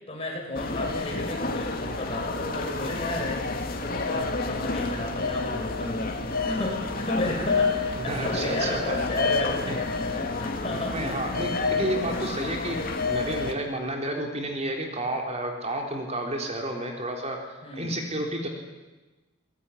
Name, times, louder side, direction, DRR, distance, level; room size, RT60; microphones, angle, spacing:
voice 1, 0.1-3.5 3.8-11.4 17.6-18.0, left 1 dB, 30° left, 0 dB, 7.5 m, -33 dB
sound 1, 0.5-13.5, left 3 dB, 50° left, 2.7 m, -29 dB
voice 2, 8.0-9.0 10.9-18.5, right 1 dB, 35° right, 2 dB, 3.7 m, -31 dB
23.5 x 20.5 x 9.9 m, 1.2 s
head